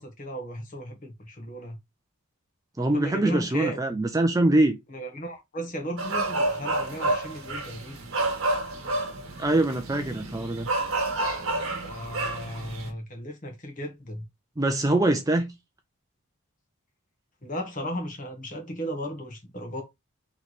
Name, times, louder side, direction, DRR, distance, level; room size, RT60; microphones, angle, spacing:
voice 1, 0.0-1.8 2.9-3.8 4.9-8.1 11.8-14.2 17.4-19.8, equal, 35° left, 1.1 m, -35 dB
voice 2, 2.8-4.8 9.4-10.7 14.6-15.5, right 2 dB, 15° right, 0.4 m, -23 dB
sound 1, 6.0-12.9, right 2 dB, 65° right, 1.1 m, -29 dB
3.2 x 3.1 x 4.0 m
head